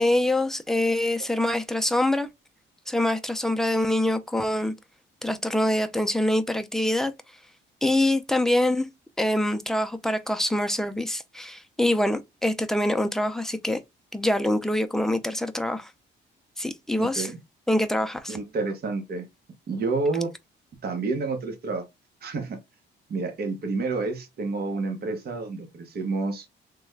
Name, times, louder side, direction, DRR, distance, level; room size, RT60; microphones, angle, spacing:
voice 1, 0.0-2.3 2.9-4.7 5.2-7.1 7.8-8.9 9.2-13.8 14.1-15.9 16.6-17.3 17.7-18.4, left 1 dB, ahead, 0.5 m, -25 dB
voice 2, 17.0-17.4 18.3-19.3 19.7-20.3 20.8-21.8 22.2-22.6 23.1-26.5, right 3 dB, 50° right, 1.0 m, -29 dB
3.3 x 2.2 x 3.2 m
cardioid pair, 90°, 20 cm